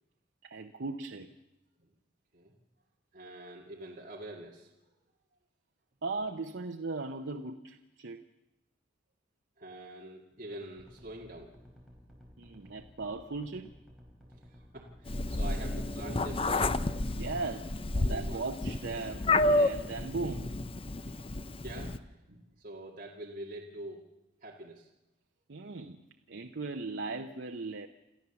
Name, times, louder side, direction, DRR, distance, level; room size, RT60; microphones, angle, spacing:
voice 1, 0.4-1.4 6.0-8.2 12.4-13.7 17.1-20.6 25.5-27.9, right 3 dB, 75° right, 5 dB, 0.8 m, -38 dB
voice 2, 3.1-5.0 9.6-11.5 14.5-16.8 17.9-18.4 21.1-21.3 21.6-24.0 24.4-24.9, right 1 dB, 45° right, -2 dB, 2.1 m, -45 dB
sound 1, 10.8-17.9, equal, ahead, 4.3 m, -55 dB
Meow, 15.1-22.0, left 2 dB, 30° left, 0.7 m, -30 dB
28.5 x 13.5 x 7.0 m, 0.96 s
head